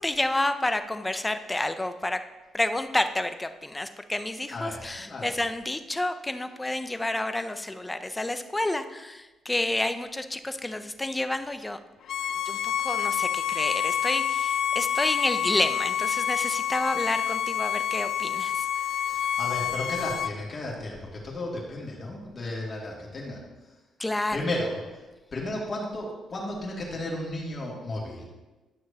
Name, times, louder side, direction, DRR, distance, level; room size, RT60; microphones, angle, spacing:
voice 1, 0.0-2.2 2.5-11.8 12.5-18.7 24.0-24.4, left 2 dB, 15° left, 9 dB, 0.6 m, -29 dB
voice 2, 4.5-5.4 19.1-23.4 24.3-24.8 25.3-28.3, left 1 dB, 40° left, -3 dB, 2.4 m, -34 dB
Bowed string instrument, 12.1-20.3, left 9 dB, 65° left, 0.4 m, -28 dB
11.0 x 6.3 x 2.9 m, 1.1 s
cardioid pair, 90°, 0 cm